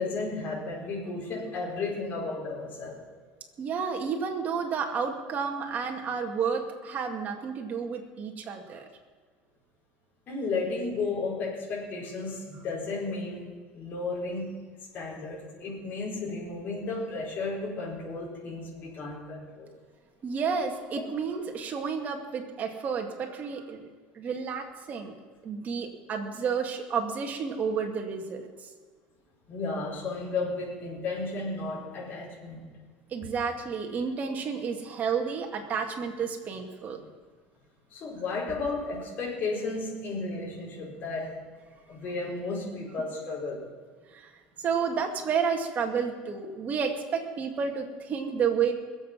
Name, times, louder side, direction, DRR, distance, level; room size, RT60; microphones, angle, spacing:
voice 1, 0.0-3.0 10.3-14.7 14.9-19.7 29.5-32.6 33.2-33.3 37.9-41.3 41.9-43.7, left 3 dB, 45° left, -4 dB, 4.8 m, -33 dB
voice 2, 3.6-8.9 20.2-23.9 24.1-25.2 25.4-28.5 33.1-37.1 44.1-44.3 44.6-48.7, right 6 dB, 40° right, 2 dB, 2.2 m, -31 dB
21.5 x 7.9 x 6.1 m, 1.5 s
supercardioid pair, 115°, 4 cm